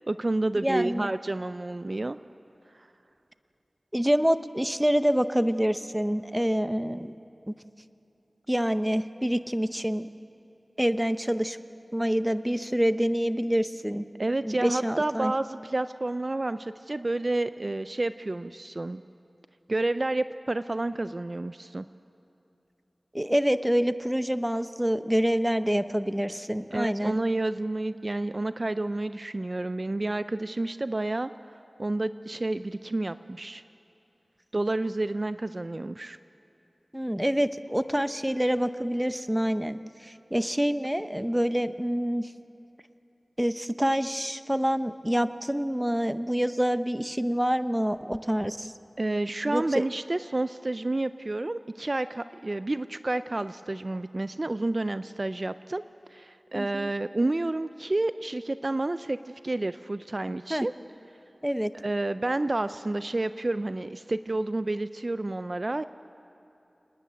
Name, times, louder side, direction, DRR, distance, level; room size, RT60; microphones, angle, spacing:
voice 1, 0.1-2.2 2.7-2.9 14.2-19.0 19.7-21.9 26.7-33.6 34.5-36.2 49.0-55.8 56.1-60.7 61.8-65.8, right 2 dB, 45° right, 12 dB, 0.4 m, -30 dB
voice 2, 0.6-1.1 3.9-7.1 7.5-7.6 8.5-10.1 10.8-11.6 11.9-14.0 14.4-15.3 23.1-27.2 36.9-42.3 43.4-48.7 49.5-49.8 56.5-56.9 60.5-60.7 61.4-61.7, equal, 10° right, 11 dB, 0.7 m, -26 dB
29.0 x 10.0 x 9.2 m, 2.9 s
wide cardioid pair, 45°, 0 cm